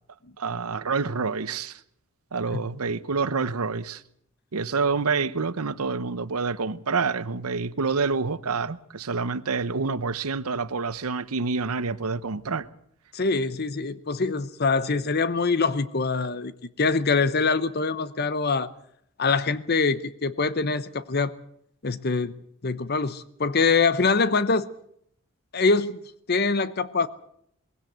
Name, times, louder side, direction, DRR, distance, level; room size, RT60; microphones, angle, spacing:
voice 1, 0.4-1.8 2.3-4.0 4.5-12.7, right 4 dB, 90° right, 0.9 m, -27 dB
voice 2, 13.1-16.5 16.8-18.7 19.2-21.3 21.8-22.3 22.6-24.7 25.5-26.0 26.3-27.1, left 4 dB, 45° left, 0.8 m, -24 dB
20.5 x 17.0 x 8.0 m
head